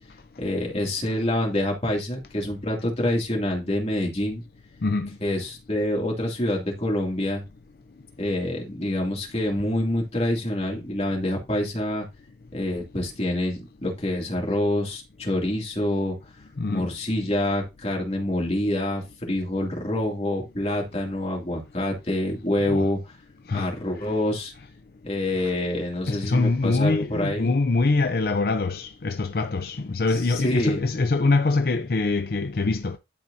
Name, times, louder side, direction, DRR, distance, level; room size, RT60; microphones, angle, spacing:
voice 1, 0.4-4.4 5.2-7.4 8.2-12.0 12.5-16.2 16.7-23.1 23.5-24.5 25.0-27.5 30.1-30.8, left 1 dB, 35° left, 2.5 m, -26 dB
voice 2, 16.6-16.9 22.7-22.9 23.5-23.7 26.1-33.0, left 3 dB, 55° left, 0.5 m, -24 dB
12.0 x 4.6 x 2.7 m
head